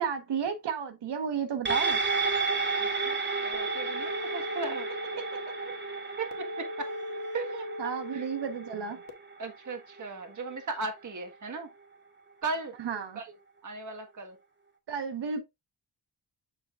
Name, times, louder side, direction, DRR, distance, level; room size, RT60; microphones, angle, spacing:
voice 1, 0.0-2.0 7.8-9.0 12.8-13.2 14.9-15.4, right 6 dB, 90° right, 1.2 m, -32 dB
sound 1, 1.7-10.3 10.7-10.8, right 4 dB, 30° right, 2.0 m, -32 dB
voice 2, 2.8-4.9 6.2-6.9 7.3-8.3 9.4-11.7 12.4-12.8 13.1-13.3 13.6-14.4, right 3 dB, 45° right, 1.6 m, -37 dB
sound 2, 3.5-9.1, left 1 dB, 80° left, 1.4 m, -39 dB
7.1 x 7.0 x 2.4 m
wide cardioid pair, 115°, 40 cm